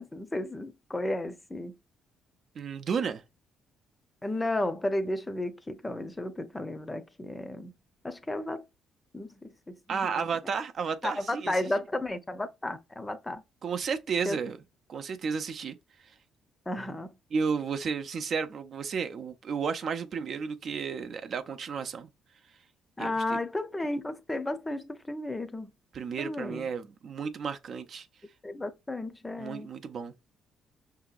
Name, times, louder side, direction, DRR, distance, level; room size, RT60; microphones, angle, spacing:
voice 1, 0.0-1.8 4.2-7.7 8.0-8.6 9.1-10.3 11.0-13.4 14.2-14.4 16.7-17.2 23.0-25.7 26.2-26.7 28.4-29.7, left 1 dB, 15° left, 0.6 m, -33 dB
voice 2, 2.5-3.2 9.9-11.5 13.6-14.6 14.9-15.8 16.0-16.1 17.3-22.1 23.0-23.4 25.9-28.1 29.4-30.1, right 6 dB, 55° right, 0.6 m, -32 dB
5.8 x 2.8 x 2.4 m
cardioid pair, 95°, 0 cm